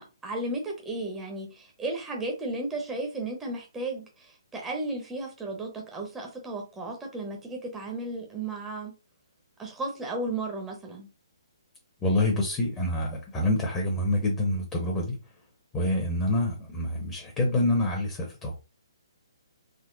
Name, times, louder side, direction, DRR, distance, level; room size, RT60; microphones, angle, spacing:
voice 1, 0.0-8.9 9.6-11.1, right 2 dB, 10° right, 0 dB, 0.8 m, -34 dB
voice 2, 12.0-15.1 15.7-18.6, left 1 dB, 15° left, 0 dB, 0.9 m, -26 dB
3.7 x 2.1 x 3.8 m, 0.31 s
hypercardioid pair, 145°, 3 cm